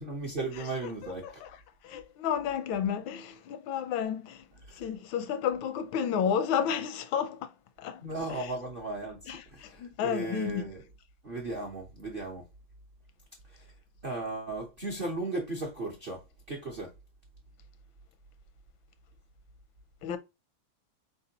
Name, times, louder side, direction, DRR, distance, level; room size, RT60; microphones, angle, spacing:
voice 1, 0.0-1.4 4.7-4.8 8.0-10.8 11.2-12.5 13.5-13.6 14.0-16.9, right 2 dB, 50° right, 0.6 m, -36 dB
voice 2, 1.8-4.4 4.8-7.5 7.8-8.0 8.3-8.5 9.3-10.6 20.0-20.2, left 8 dB, 85° left, 1.4 m, -31 dB
4.3 x 3.5 x 2.8 m
omnidirectional pair, 2.1 m